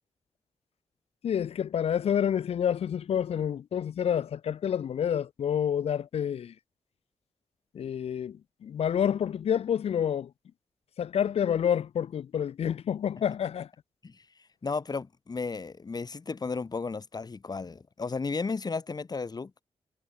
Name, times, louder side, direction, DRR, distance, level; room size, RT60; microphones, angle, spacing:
voice 1, 1.2-6.5 7.7-8.4 8.6-10.3 11.0-13.7, left 8 dB, 75° left, 1.1 m, -28 dB
voice 2, 14.6-19.5, left 4 dB, 40° left, 4.0 m, -34 dB
cardioid pair, 85°, 10 cm